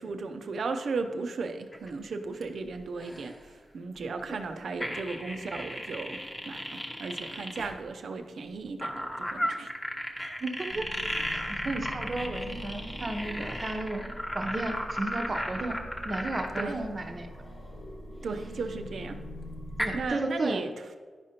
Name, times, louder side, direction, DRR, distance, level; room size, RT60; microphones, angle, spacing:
voice 1, 0.0-3.3 3.7-6.2 6.5-9.7 16.6-16.7 18.2-19.2 19.9-20.7, right 4 dB, 70° right, 7 dB, 0.6 m, -35 dB
sound 1, 1.7-1.9 2.3-2.4 3.0-3.3 4.8-7.7 8.8-16.8 18.9-19.0 19.8-19.9, equal, 15° left, 1.0 m, -34 dB
voice 2, 10.4-10.9 11.3-14.0 14.3-15.8 16.0-17.3 19.8-20.6, right 2 dB, 40° right, 4 dB, 0.8 m, -33 dB
sound 2, 10.7-20.1, equal, 80° left, 1.7 m, -43 dB
10.5 x 5.1 x 2.8 m, 1.5 s
cardioid pair, 85°, 0 cm